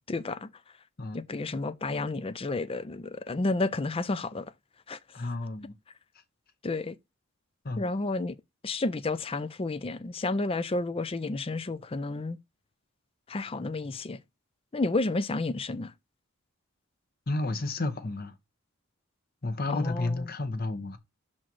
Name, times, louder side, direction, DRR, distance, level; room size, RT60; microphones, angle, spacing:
voice 1, 0.1-0.5 1.1-4.5 4.9-5.0 6.6-7.0 7.8-8.4 8.6-12.4 13.3-14.2 14.7-15.9 19.7-20.3, left 2 dB, 25° left, 0.5 m, -31 dB
voice 2, 5.1-5.7 7.6-7.9 17.3-18.4 19.4-21.0, left 2 dB, 45° left, 1.1 m, -31 dB
6.1 x 4.4 x 4.5 m
head